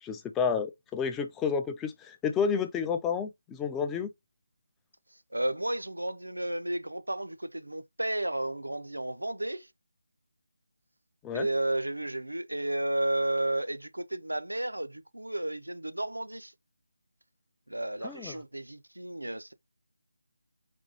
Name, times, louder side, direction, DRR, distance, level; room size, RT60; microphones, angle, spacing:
voice 1, 0.0-4.1 11.2-11.5 18.0-18.3, left 6 dB, 10° left, 0.3 m, -30 dB
voice 2, 5.3-9.7 11.3-16.5 17.7-19.5, right 1 dB, 80° right, 0.4 m, -32 dB
4.2 x 2.3 x 2.7 m
figure-of-eight pair, 160°, 0 cm